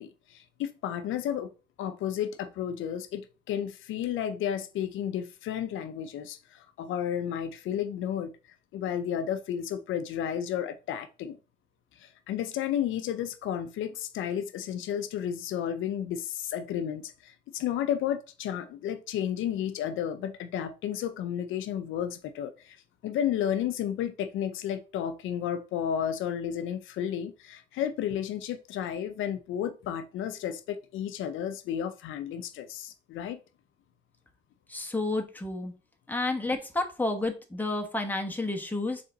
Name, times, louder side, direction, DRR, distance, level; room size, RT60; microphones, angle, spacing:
voice 1, 0.0-1.5 1.8-8.3 8.7-11.4 12.0-22.8 23.0-33.4, left 9 dB, 80° left, 0.5 m, -32 dB
voice 2, 34.7-35.7 36.1-39.0, left 2 dB, 10° left, 1.0 m, -30 dB
3.9 x 3.4 x 3.8 m
cardioid pair, 90°, 20 cm